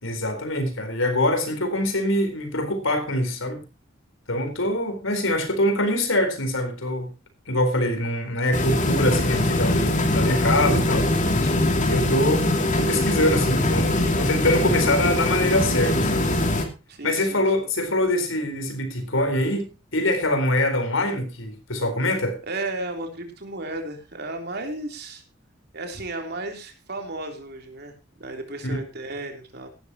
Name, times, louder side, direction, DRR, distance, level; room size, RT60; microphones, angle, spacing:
voice 1, 0.0-3.6 4.3-7.1 7.5-11.1 11.4-11.5 11.8-12.5 12.7-16.3 17.0-22.4 28.6-28.8, left 1 dB, 75° left, 4.1 m, -24 dB
sound 1, 8.5-16.6, left 1 dB, 40° left, 2.6 m, -22 dB
voice 2, 16.9-17.7 22.4-25.2 25.7-29.7, right 2 dB, 55° right, 3.5 m, -34 dB
17.0 x 13.0 x 2.9 m
head